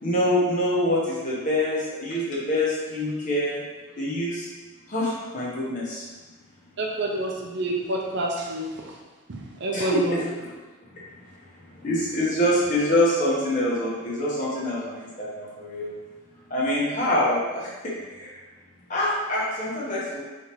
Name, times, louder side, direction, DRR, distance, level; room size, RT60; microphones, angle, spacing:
voice 1, 0.0-3.6 4.0-4.5 4.9-6.1 9.7-10.5 10.9-11.0 11.7-16.0 16.5-18.4 18.9-20.2, left 1 dB, 35° left, -6 dB, 1.0 m, -25 dB
voice 2, 6.8-8.7 9.3-10.2, right 1 dB, 55° right, -1 dB, 0.6 m, -28 dB
4.0 x 3.4 x 2.9 m, 1.2 s
head